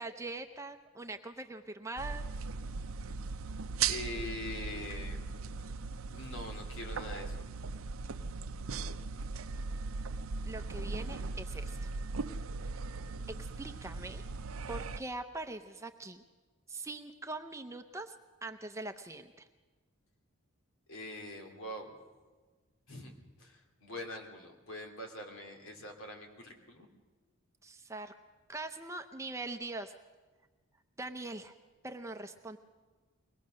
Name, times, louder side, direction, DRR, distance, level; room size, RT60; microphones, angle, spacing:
voice 1, 0.0-2.3 10.4-11.9 13.3-14.2 14.7-16.2 16.7-18.1 18.4-19.5 27.6-28.1 28.5-29.9 31.0-31.5 31.8-32.6, right 2 dB, 15° right, 7 dB, 0.6 m, -42 dB
sound 1, 2.0-15.0, right 4 dB, 75° right, 0.6 m, -38 dB
voice 2, 3.9-5.2 6.1-7.4 20.9-21.9 22.9-23.1 23.4-26.9, left 1 dB, 70° left, 3 dB, 2.8 m, -43 dB
22.5 x 19.0 x 6.4 m, 1.3 s
head